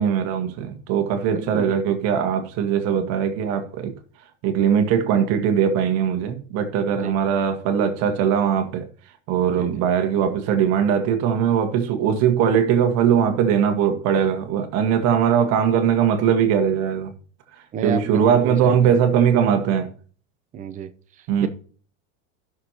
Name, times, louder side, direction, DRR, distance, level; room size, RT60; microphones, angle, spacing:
voice 1, 0.0-3.9 4.4-8.9 9.3-17.1 17.8-19.9 21.3-21.5, right 8 dB, 45° right, 1.6 m, -20 dB
voice 2, 1.3-1.8 6.9-7.2 9.5-9.9 17.7-19.0 20.5-21.5, right 6 dB, 20° right, 0.7 m, -31 dB
16.0 x 6.3 x 2.9 m
supercardioid pair, 145°, 35 cm